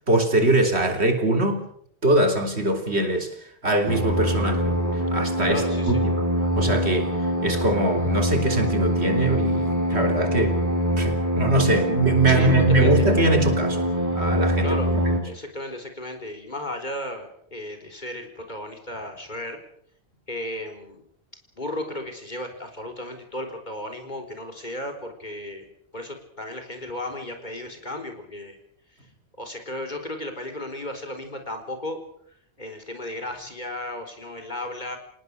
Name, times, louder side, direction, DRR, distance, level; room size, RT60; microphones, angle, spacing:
voice 1, 0.1-1.6 2.0-3.3 3.6-4.6 5.1-6.3 6.6-7.1 7.4-10.7 10.9-13.9 14.2-14.8, right 2 dB, 75° right, 5 dB, 3.6 m, -22 dB
sound 1, 3.9-15.2, equal, 15° right, 4.2 m, -24 dB
voice 2, 5.5-6.0 12.3-13.1 14.6-14.9 15.2-19.6 20.3-21.0 21.6-25.7 25.9-28.6 29.4-32.0 32.6-35.0, left 1 dB, 45° left, 6 dB, 4.4 m, -34 dB
27.5 x 19.0 x 6.7 m, 0.65 s
omnidirectional pair, 1.1 m